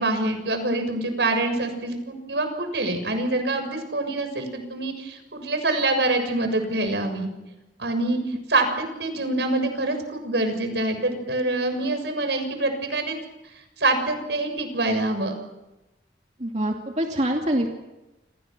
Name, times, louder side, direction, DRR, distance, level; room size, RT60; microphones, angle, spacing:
voice 1, 0.0-7.3 7.8-13.2 13.4-15.4, right 2 dB, 80° right, 6 dB, 6.9 m, -25 dB
voice 2, 16.4-17.7, right 1 dB, 40° right, 1 dB, 2.6 m, -25 dB
30.0 x 27.5 x 6.2 m, 0.99 s
head